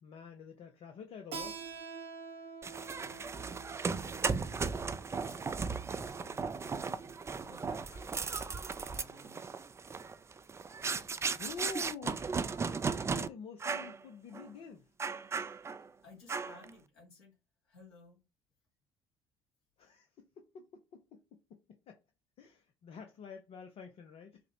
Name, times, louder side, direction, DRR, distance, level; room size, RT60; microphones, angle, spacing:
voice 1, 0.0-1.6 11.3-12.2 13.1-14.9 19.8-22.0 22.4-24.4, left 5 dB, 50° left, 0.6 m, -48 dB
Keyboard (musical), 1.3-6.6, right 6 dB, 50° right, 0.8 m, -47 dB
sound 1, 2.6-13.3 13.6-14.0 14.3-14.5 15.0-15.9 16.3-16.7, right 5 dB, 20° right, 0.4 m, -36 dB
voice 2, 2.9-4.8 5.1-9.4 15.5-15.7 16.0-17.4 17.6-18.2, left 2 dB, 70° left, 1.9 m, -58 dB
4.9 x 2.1 x 2.7 m
figure-of-eight pair, 50°, 13 cm